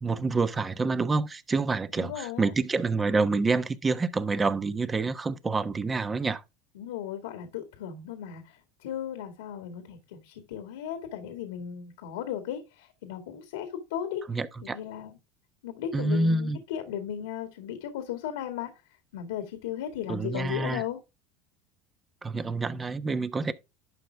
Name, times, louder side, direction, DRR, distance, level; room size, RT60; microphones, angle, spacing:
voice 1, 0.0-6.4 14.3-14.8 15.9-16.6 20.1-20.8 22.2-23.5, right 3 dB, 20° right, 1.1 m, -27 dB
voice 2, 2.0-2.5 6.7-14.2 14.6-15.2 15.6-18.7 19.1-21.0, left 9 dB, 90° left, 2.1 m, -36 dB
11.5 x 5.6 x 3.5 m
supercardioid pair, 110°, 0 cm